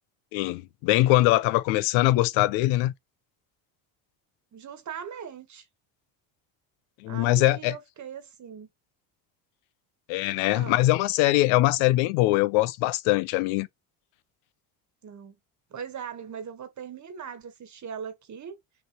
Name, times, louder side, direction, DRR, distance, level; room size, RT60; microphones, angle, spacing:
voice 1, 0.3-2.9 7.0-7.8 10.1-13.7, left 17 dB, 85° left, 0.7 m, -22 dB
voice 2, 4.5-5.6 7.1-8.7 10.5-10.8 15.0-15.4 15.7-18.6, right 7 dB, 35° right, 1.4 m, -40 dB
5.9 x 2.9 x 3.0 m
cardioid pair, 110°, 47 cm